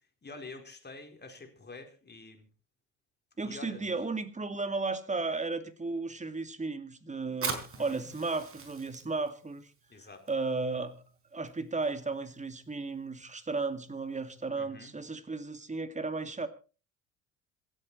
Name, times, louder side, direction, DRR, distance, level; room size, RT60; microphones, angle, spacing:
voice 1, 0.2-2.5 3.4-3.9 7.8-8.1 9.9-10.2 14.6-15.0, left 3 dB, 25° left, 4.5 m, -47 dB
voice 2, 3.4-9.7 10.3-11.0 11.3-16.5, right 3 dB, 15° right, 2.4 m, -34 dB
Fire, 7.3-14.5, right 4 dB, 30° right, 4.4 m, -44 dB
26.0 x 8.8 x 4.3 m
hypercardioid pair, 60°, 41 cm